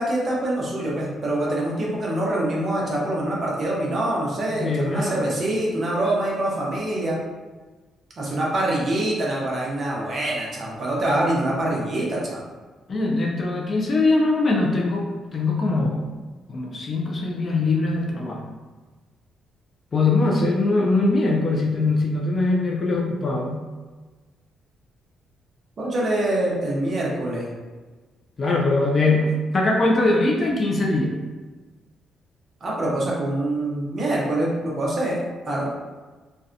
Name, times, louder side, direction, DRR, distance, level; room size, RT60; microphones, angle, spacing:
voice 1, 0.0-7.2 8.2-12.4 25.8-27.5 32.6-35.2 35.4-35.7, right 1 dB, 35° right, -4 dB, 0.6 m, -25 dB
voice 2, 4.5-5.2 12.9-16.1 16.5-18.4 19.9-23.6 28.4-31.1, left 2 dB, 30° left, -1 dB, 0.3 m, -22 dB
2.6 x 2.1 x 2.4 m, 1.3 s
cardioid pair, 160°, 0 cm